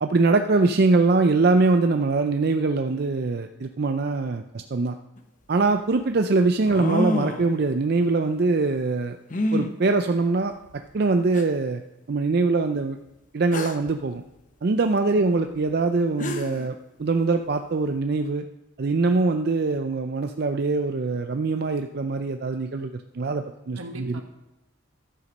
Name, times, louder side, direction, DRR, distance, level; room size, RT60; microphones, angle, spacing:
voice 1, 0.0-5.0 5.5-9.2 9.5-10.5 10.9-11.8 12.1-13.0 13.3-14.2 14.6-18.4 18.8-24.2, right 3 dB, 50° right, 7 dB, 0.4 m, -23 dB
sound 1, 5.2-5.3 6.6-7.5 9.3-9.7 10.7-10.8 11.3-11.4 13.5-13.9 15.8-15.9 16.2-16.7, left 1 dB, 40° left, 0.8 m, -27 dB
voice 2, 15.0-15.5 23.7-24.2, right 1 dB, 80° right, 4 dB, 1.5 m, -40 dB
11.5 x 8.1 x 5.2 m, 0.98 s
head